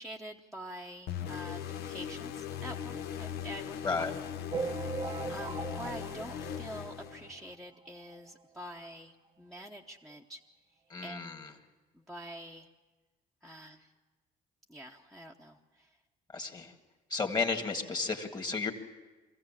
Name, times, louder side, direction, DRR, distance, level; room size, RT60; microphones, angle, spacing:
voice 1, 0.0-4.0 4.6-4.7 5.3-10.4 11.0-11.2 11.9-12.7 13.4-13.9 14.7-15.9, right 1 dB, ahead, -3 dB, 1.0 m, -46 dB
sound 1, 1.1-7.5, left 9 dB, 75° left, 1.0 m, -39 dB
sound 2, 4.5-7.4 7.9-8.0 8.1-8.3 8.6-8.7 9.5-9.6 10.1-10.2, right 5 dB, 25° right, 0.6 m, -39 dB
voice 2, 10.9-11.5 16.3-16.7 17.1-18.7, left 4 dB, 25° left, 5 dB, 1.9 m, -33 dB
23.0 x 15.5 x 7.4 m, 1.2 s
cardioid pair, 110°, 17 cm